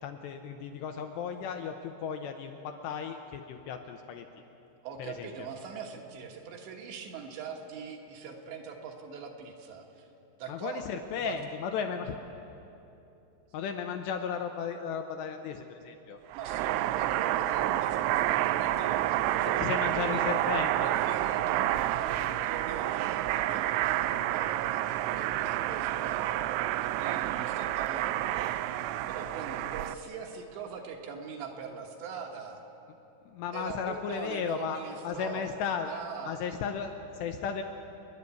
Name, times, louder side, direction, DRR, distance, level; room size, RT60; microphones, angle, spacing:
voice 1, 0.0-4.3 5.0-5.5 10.5-12.2 13.5-16.2 19.6-20.9 33.3-35.9 36.3-37.6, left 7 dB, 80° left, 5 dB, 2.6 m, -35 dB
voice 2, 4.8-10.1 10.4-11.4 16.3-26.4 26.8-32.6 33.5-35.5 35.9-36.4, right 6 dB, 70° right, 2 dB, 3.3 m, -42 dB
sound 1, 16.3-29.9, right 14 dB, 85° right, 3.1 m, -29 dB
29.5 x 10.5 x 8.3 m, 3.0 s
omnidirectional pair, 5.6 m